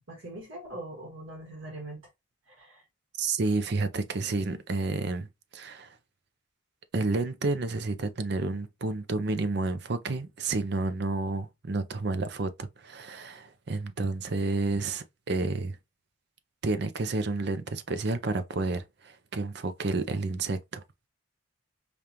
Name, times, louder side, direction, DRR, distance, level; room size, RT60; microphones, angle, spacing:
voice 1, 0.1-2.0 2.5-2.8, right 1 dB, 80° right, 1.6 m, -42 dB
voice 2, 3.2-5.3 5.5-5.9 6.9-15.8 16.6-20.8, right 3 dB, 55° right, 0.5 m, -30 dB
5.1 x 2.4 x 2.8 m
head